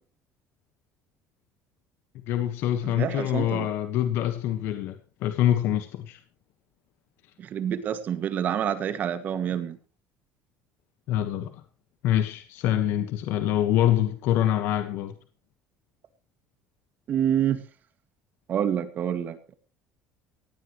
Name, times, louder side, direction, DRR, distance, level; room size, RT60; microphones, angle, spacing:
voice 1, 2.3-6.2 11.1-11.6 12.0-15.1, left 11 dB, 65° left, 9 dB, 1.4 m, -25 dB
voice 2, 2.8-3.7 7.4-9.8 17.1-17.6 18.5-19.6, right 9 dB, 40° right, 11 dB, 1.9 m, -27 dB
17.5 x 16.0 x 3.1 m, 0.35 s
cardioid pair, 145°, 4 cm